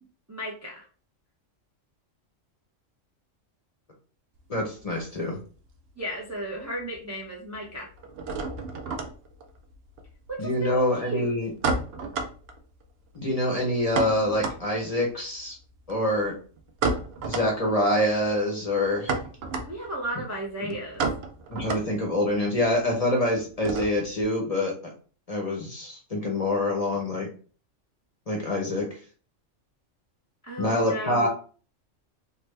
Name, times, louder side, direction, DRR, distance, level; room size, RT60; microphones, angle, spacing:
voice 1, 0.3-0.8 6.0-7.9 10.3-11.3 19.6-21.1 30.4-31.3, right 1 dB, 25° right, -3 dB, 0.3 m, -34 dB
sound 1, 4.4-6.0 6.2-7.0 7.2-24.2, right 3 dB, 65° right, 0.7 m, -33 dB
voice 2, 4.5-5.4 10.4-11.5 13.1-15.6 15.9-16.3 17.2-19.1 20.6-20.7 21.5-24.7 25.3-27.3 28.3-28.9 30.6-31.3, left 1 dB, 35° left, 0 dB, 0.7 m, -26 dB
3.3 x 2.1 x 3.1 m, 0.40 s
omnidirectional pair, 1.3 m